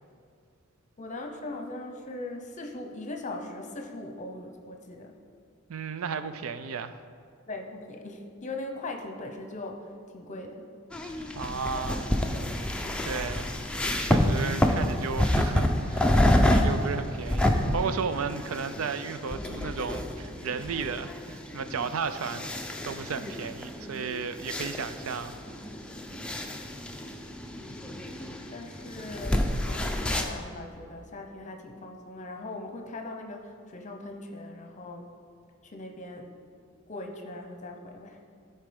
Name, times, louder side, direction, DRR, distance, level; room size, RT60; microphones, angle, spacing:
voice 1, 1.0-5.2 7.5-10.7 27.5-28.0 28.5-35.1 35.6-36.3 36.9-38.2, left 2 dB, 35° left, 4 dB, 0.9 m, -40 dB
voice 2, 5.7-7.0 11.3-12.1 13.0-13.5 14.0-16.2 16.5-22.5 22.8-25.4, right 5 dB, 80° right, 11 dB, 0.5 m, -34 dB
sound 1, 10.9-30.3, left 1 dB, 5° left, 0.5 m, -28 dB
13.0 x 4.5 x 5.2 m, 2.3 s
head